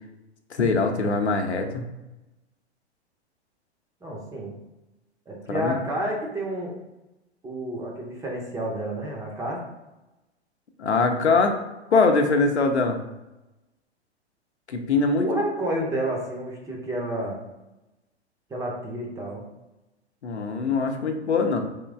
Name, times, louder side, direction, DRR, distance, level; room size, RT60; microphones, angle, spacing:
voice 1, 0.5-1.8 5.5-5.8 10.8-11.6 11.9-13.0 14.7-15.3 20.2-21.6, left 4 dB, 75° left, 4 dB, 0.7 m, -22 dB
voice 2, 4.0-4.5 5.3-6.7 7.4-9.6 15.2-17.4 18.5-19.4, right 1 dB, 10° right, -1 dB, 0.6 m, -30 dB
3.7 x 3.1 x 3.4 m, 1.0 s
figure-of-eight pair, 105°, 33 cm